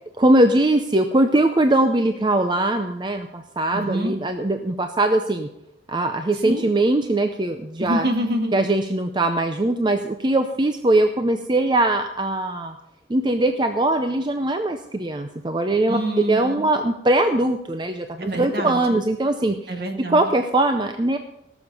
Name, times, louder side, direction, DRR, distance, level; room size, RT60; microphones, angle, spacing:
voice 1, 0.2-5.5 5.9-8.1 8.5-12.7 13.1-16.0 16.3-19.7 20.1-21.2, right 1 dB, 25° right, 7 dB, 0.5 m, -21 dB
voice 2, 3.7-4.1 6.4-6.7 7.8-8.5 15.9-16.6 18.2-18.8 19.7-20.3, equal, 55° right, 4 dB, 1.8 m, -26 dB
17.5 x 7.1 x 5.3 m, 0.83 s
head